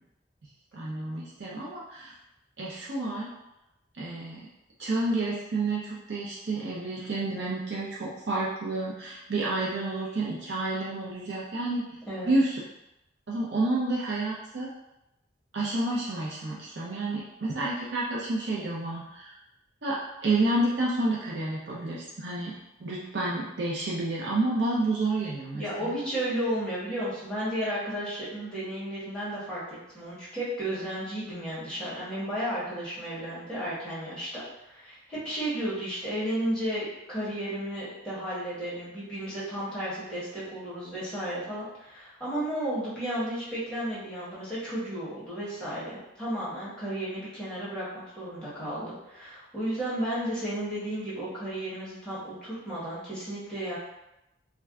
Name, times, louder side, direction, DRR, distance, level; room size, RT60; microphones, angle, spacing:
voice 1, 0.7-2.1 2.6-3.3 4.0-4.5 4.8-11.9 12.2-12.6 13.3-14.7 15.5-19.3 19.8-22.5 22.8-26.0, right 2 dB, 60° right, -5 dB, 0.5 m, -30 dB
voice 2, 25.5-29.6 29.9-47.8 48.2-53.8, right 1 dB, 5° left, -10 dB, 1.0 m, -33 dB
2.5 x 2.2 x 3.5 m, 0.89 s
head